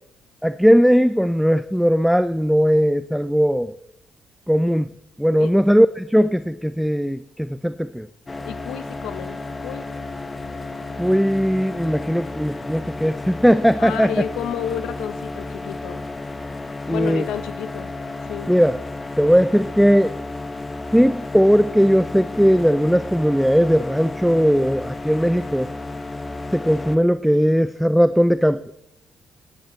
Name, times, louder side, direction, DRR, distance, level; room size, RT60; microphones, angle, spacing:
voice 1, 0.4-3.8 4.5-4.9 5.2-8.1 11.0-14.1 16.9-17.3 18.5-18.8 19.2-20.1 20.9-25.7 26.5-28.6, equal, ahead, 13 dB, 0.3 m, -18 dB
sound 1, 8.3-27.0, left 2 dB, 20° left, 0.9 m, -33 dB
voice 2, 8.4-9.9 13.8-16.0 16.9-17.9 18.2-18.5, left 10 dB, 90° left, 12 dB, 0.8 m, -31 dB
17.0 x 10.0 x 3.1 m, 0.79 s
cardioid pair, 90°, 0 cm